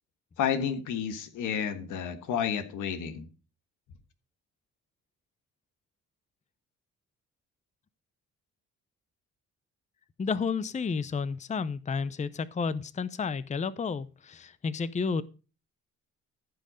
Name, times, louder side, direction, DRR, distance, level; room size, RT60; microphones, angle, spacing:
voice 1, 0.4-3.3, left 8 dB, 85° left, 9 dB, 1.5 m, -31 dB
voice 2, 10.2-15.2, left 5 dB, 25° left, 16 dB, 0.6 m, -31 dB
14.0 x 5.4 x 5.0 m, 0.34 s
cardioid pair, 90°, 30 cm